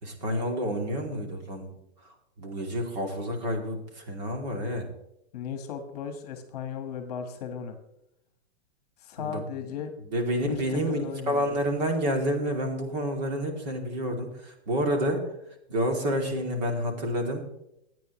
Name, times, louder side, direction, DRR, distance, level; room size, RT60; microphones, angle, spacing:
voice 1, 0.0-1.7 2.4-4.9 9.2-9.4 10.1-15.2 15.7-17.4, equal, 40° right, 2 dB, 2.8 m, -29 dB
voice 2, 5.3-7.8 9.0-9.9 10.5-11.5, left 7 dB, 35° left, 7 dB, 1.4 m, -36 dB
24.5 x 9.4 x 3.2 m, 0.81 s
hypercardioid pair, 175°, 32 cm